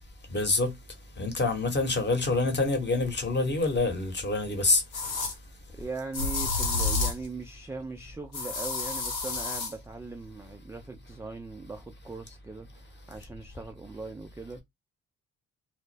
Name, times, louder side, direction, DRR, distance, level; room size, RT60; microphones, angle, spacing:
voice 1, 0.3-0.7 1.2-4.8, left 3 dB, 25° left, 1.0 m, -26 dB
sound 1, 3.7-3.8 4.9-5.3 6.1-7.3 8.3-9.7, left 3 dB, 85° left, 0.9 m, -30 dB
voice 2, 5.8-14.6, right 3 dB, 5° right, 0.3 m, -40 dB
2.1 x 2.0 x 3.2 m
hypercardioid pair, 50°, 41 cm